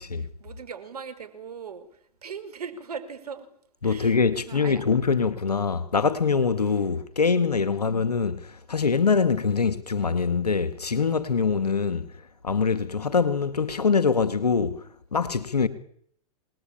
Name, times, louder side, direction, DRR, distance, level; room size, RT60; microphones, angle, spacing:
voice 1, 0.0-1.9 2.2-3.5 3.8-4.8 5.1-5.3 7.7-8.0, right 6 dB, 75° right, 5.0 m, -40 dB
voice 2, 3.8-12.1 12.4-14.8 15.1-15.7, left 5 dB, 90° left, 2.2 m, -24 dB
28.0 x 20.0 x 8.8 m
hypercardioid pair, 105°, 20 cm